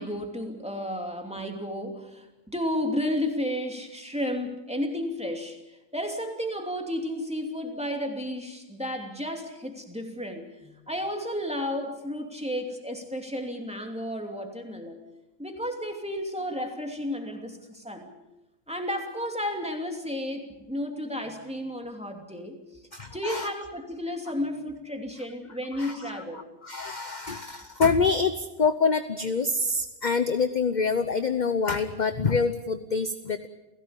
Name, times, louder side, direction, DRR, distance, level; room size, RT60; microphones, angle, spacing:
voice 1, 0.0-15.0 15.4-18.1 18.7-22.6 23.1-26.4, left 1 dB, 5° right, 2 dB, 2.8 m, -32 dB
voice 2, 22.9-23.5 25.7-26.0 26.3-33.5, left 4 dB, 40° left, 10 dB, 0.9 m, -26 dB
29.5 x 16.5 x 7.0 m, 0.98 s
omnidirectional pair, 1.4 m